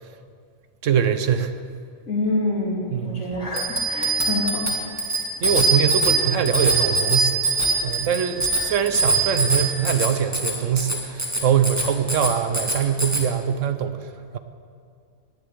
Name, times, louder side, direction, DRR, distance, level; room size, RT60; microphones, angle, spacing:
voice 1, 0.8-1.5 2.9-3.3 5.4-14.4, right 8 dB, 65° right, 9 dB, 1.1 m, -23 dB
voice 2, 2.1-4.7, left 2 dB, 70° left, -3 dB, 3.3 m, -26 dB
Bicycle bell, 3.5-13.2, right 3 dB, 10° right, 1.9 m, -23 dB
10.5 x 9.7 x 9.8 m, 2.2 s
omnidirectional pair, 1.4 m